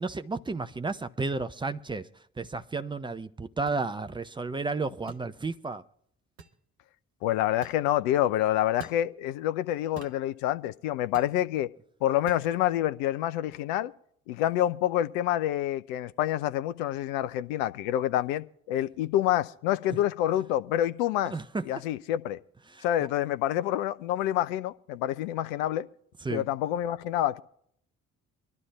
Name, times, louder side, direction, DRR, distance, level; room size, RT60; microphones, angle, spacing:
voice 1, 0.0-5.8 21.3-21.7 22.7-22.9 26.2-26.5, right 3 dB, 10° right, 0.5 m, -32 dB
sound 1, 3.7-3.8 5.1-5.3 6.4-6.6 7.6-7.8 8.8-9.0 10.0-10.2 11.1-11.4 12.3-12.5, right 6 dB, 75° right, 0.8 m, -46 dB
voice 2, 7.2-11.7 12.0-13.9 14.3-21.3 21.7-22.4 22.8-25.9 26.3-27.4, left 12 dB, 65° left, 0.6 m, -27 dB
25.0 x 12.0 x 2.3 m
figure-of-eight pair, 40°, 42 cm